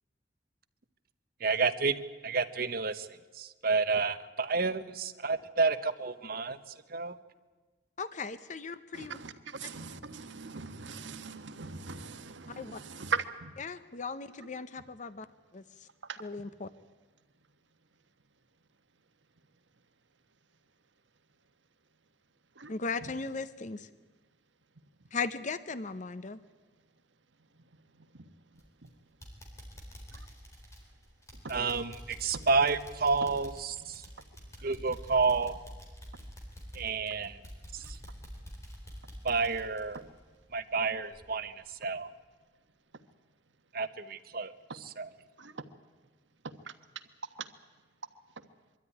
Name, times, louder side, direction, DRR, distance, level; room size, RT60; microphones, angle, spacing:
voice 1, 1.4-3.1 3.3-6.6 6.9-7.2 31.5-34.0 34.6-35.6 36.7-37.4 37.7-38.0 39.2-40.0 40.5-42.1 43.7-45.1, right 4 dB, 55° right, 11 dB, 1.0 m, -30 dB
voice 2, 8.0-9.2 12.6-12.8 13.6-15.3 15.5-15.6 16.2-16.7 22.7-23.9 25.1-26.4, left 4 dB, 45° left, 13 dB, 0.7 m, -37 dB
voice 3, 8.9-13.5 22.6-22.7 45.4-45.5, right 5 dB, 85° right, 9 dB, 1.3 m, -39 dB
sound 1, 28.5-28.9 29.2-40.8 41.1-41.2 41.7-41.8, equal, 15° left, 4.2 m, -48 dB
23.0 x 13.0 x 9.8 m, 1.3 s
head